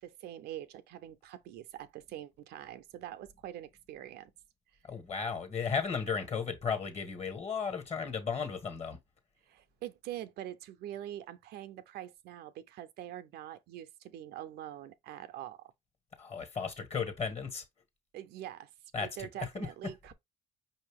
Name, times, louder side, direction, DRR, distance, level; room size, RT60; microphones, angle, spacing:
voice 1, 0.0-4.3 9.5-15.7 18.1-18.7 19.0-20.1, right 12 dB, 70° right, 0.5 m, -44 dB
voice 2, 4.9-9.0 16.2-17.6 18.9-20.0, left 5 dB, 40° left, 1.5 m, -35 dB
5.4 x 2.6 x 3.5 m
cardioid pair, 110°, 17 cm